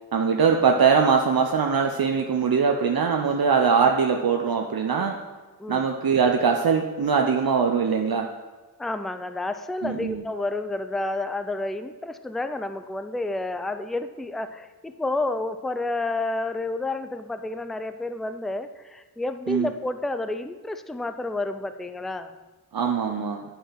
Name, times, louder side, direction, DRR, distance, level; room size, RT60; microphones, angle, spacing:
voice 1, 0.1-5.2 5.7-8.3 9.8-10.2 19.5-19.7 22.7-23.4, right 6 dB, 65° right, 3 dB, 0.7 m, -22 dB
voice 2, 8.8-22.4, left 2 dB, ahead, 9 dB, 0.4 m, -30 dB
9.7 x 5.6 x 5.8 m, 1.2 s
wide cardioid pair, 85°, 39 cm